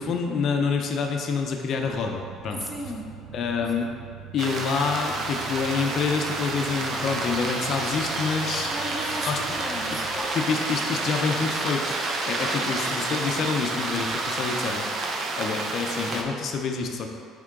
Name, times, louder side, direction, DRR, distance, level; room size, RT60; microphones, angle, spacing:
voice 1, 0.0-2.6 3.3-3.9 4.3-8.7 9.2-9.4 10.3-12.0 12.3-17.2, left 5 dB, 45° left, 3 dB, 0.5 m, -27 dB
sound 1, 1.8-10.2, right 8 dB, 80° right, 0.5 m, -43 dB
voice 2, 2.5-3.2 3.6-3.7 8.6-10.1 12.5-12.9, equal, ahead, 0 dB, 0.6 m, -36 dB
sound 2, 4.4-16.2, right 2 dB, 40° right, 0.6 m, -29 dB
sound 3, 6.7-14.9, left 1 dB, 20° left, 1.3 m, -42 dB
8.2 x 3.6 x 3.7 m, 2.2 s
cardioid pair, 145°, 0 cm